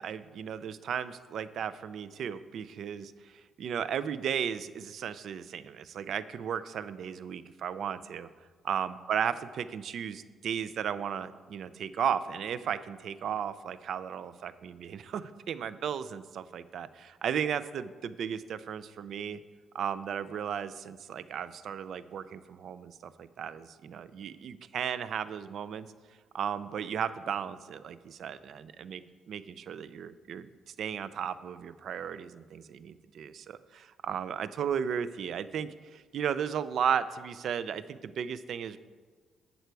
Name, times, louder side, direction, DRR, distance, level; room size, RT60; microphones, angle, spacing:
voice 1, 0.0-3.3 3.6-8.3 8.6-19.4 19.7-25.9 26.3-38.8, right 8 dB, 65° right, 15 dB, 0.5 m, -35 dB
11.0 x 8.0 x 4.7 m, 1.5 s
cardioid pair, 90°, 0 cm